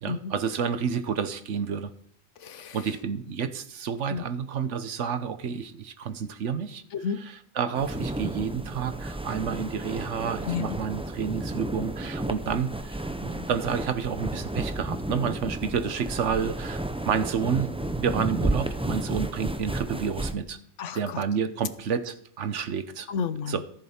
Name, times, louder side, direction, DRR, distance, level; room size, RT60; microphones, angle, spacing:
voice 1, 0.0-1.9 2.7-6.8 7.6-20.6 20.9-23.1 23.5-23.7, right 7 dB, 80° right, 11 dB, 1.2 m, -30 dB
voice 2, 2.4-2.8 4.1-4.2 6.9-7.2 10.4-10.8 20.8-21.2 23.1-23.6, left 6 dB, 80° left, 13 dB, 1.1 m, -32 dB
sound 1, 7.7-20.3, right 1 dB, 10° right, 0.4 m, -32 dB
14.0 x 7.4 x 4.4 m, 0.66 s
omnidirectional pair, 1.2 m